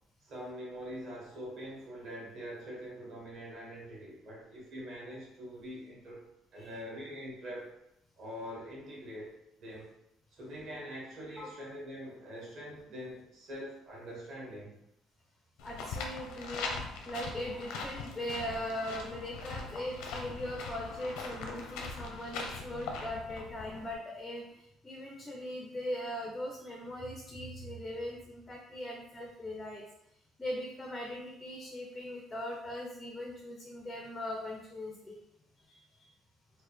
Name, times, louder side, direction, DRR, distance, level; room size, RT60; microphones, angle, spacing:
voice 1, 0.2-6.2 6.5-7.7 8.2-9.3 9.6-9.9 10.3-14.8, equal, 50° right, -5 dB, 1.5 m, -44 dB
sound 1, 15.6-23.9, left 4 dB, 90° left, 0.6 m, -41 dB
voice 2, 15.6-16.7 17.0-29.9 30.4-35.2 35.6-36.1, left 1 dB, 10° left, 0 dB, 0.4 m, -40 dB
3.9 x 2.4 x 3.1 m, 0.79 s
cardioid pair, 175°, 0 cm